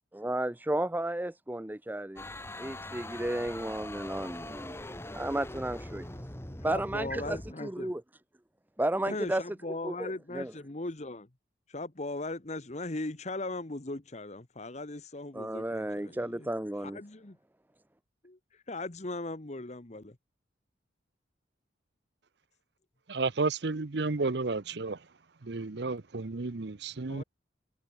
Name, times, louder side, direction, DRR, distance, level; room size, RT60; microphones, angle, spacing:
voice 1, 0.1-2.3 2.6-4.8 5.1-6.1 6.6-8.0 8.8-9.4 9.8-10.5 15.3-17.0, right 1 dB, 10° right, 0.6 m, -33 dB
sound 1, 2.2-7.5, left 1 dB, 15° left, 1.4 m, -42 dB
voice 2, 6.1-8.0 9.1-11.3 11.7-16.5 16.8-17.4 18.2-18.4 18.7-20.2 27.1-27.2, left 2 dB, 35° left, 1.2 m, -38 dB
voice 3, 23.1-25.0 25.4-27.2, right 3 dB, 60° right, 0.8 m, -32 dB
head